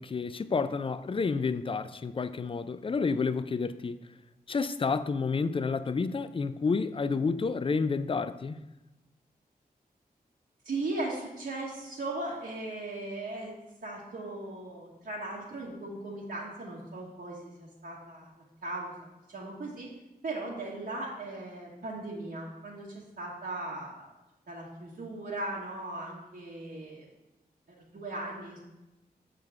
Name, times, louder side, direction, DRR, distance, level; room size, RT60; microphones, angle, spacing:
voice 1, 0.0-4.0 4.5-8.6, left 4 dB, 35° left, 0.3 m, -30 dB
voice 2, 10.6-13.6 13.8-18.3 18.6-18.9 19.3-19.9 20.2-24.1 24.5-27.0 27.8-28.6, right 2 dB, 75° right, 1.1 m, -38 dB
6.4 x 3.8 x 4.5 m
cardioid pair, 50°, 17 cm